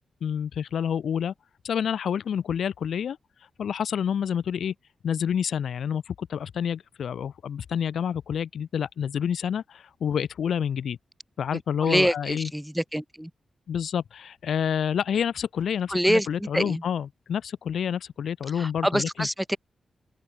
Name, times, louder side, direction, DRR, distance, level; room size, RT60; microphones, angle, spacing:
voice 1, 0.2-1.3 1.6-3.2 3.6-4.7 5.0-11.0 11.4-12.5 13.7-19.3, left 8 dB, 80° left, 1.2 m, -28 dB
voice 2, 11.5-13.3 15.9-16.8 18.6-19.6, equal, 5° right, 1.8 m, -26 dB
open air
wide cardioid pair, 110°, 0 cm